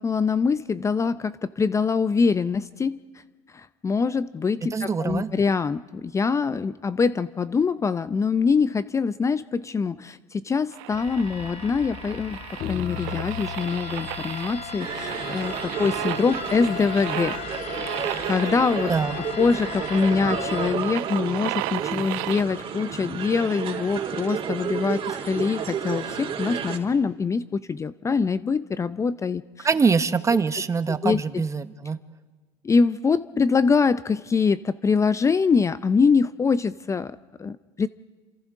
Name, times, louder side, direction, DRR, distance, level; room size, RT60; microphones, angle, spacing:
voice 1, 0.0-3.0 3.5-17.3 17.9-18.9 19.2-29.7 30.9-31.2 32.6-37.1 37.4-37.9, left 5 dB, 20° left, 14 dB, 0.6 m, -24 dB
voice 2, 4.6-5.3 18.9-19.1 29.6-32.0, right 5 dB, 20° right, 12 dB, 1.0 m, -24 dB
sound 1, 10.7-22.4, right 17 dB, 80° right, 0.8 m, -35 dB
sound 2, 10.9-20.7, left 9 dB, 55° left, 1.3 m, -36 dB
sound 3, 14.8-26.8, right 7 dB, 45° right, 3.6 m, -32 dB
28.5 x 26.5 x 3.7 m, 1.4 s
supercardioid pair, 105°, 13 cm